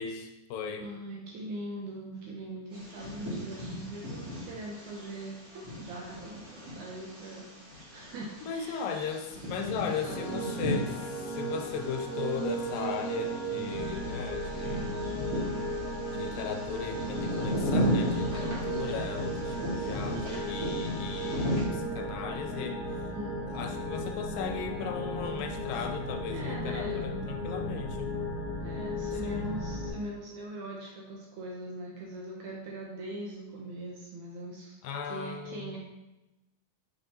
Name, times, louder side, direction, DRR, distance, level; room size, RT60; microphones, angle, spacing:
voice 1, 0.0-0.9 8.4-14.9 16.1-23.1 23.5-28.1 29.2-29.5 34.8-35.8, left 6 dB, 80° left, 5 dB, 2.2 m, -37 dB
voice 2, 0.8-8.9 9.8-10.7 14.7-15.1 23.1-23.6 26.3-27.0 28.6-34.8 35.0-35.8, right 1 dB, 70° right, -3 dB, 2.0 m, -41 dB
Bird vocalization bird call bird song, 2.7-21.6, equal, 30° right, 1.9 m, -36 dB
sound 1, 10.0-29.9, right 1 dB, 50° right, 1.7 m, -35 dB
6.3 x 5.6 x 2.9 m, 0.99 s
omnidirectional pair, 4.2 m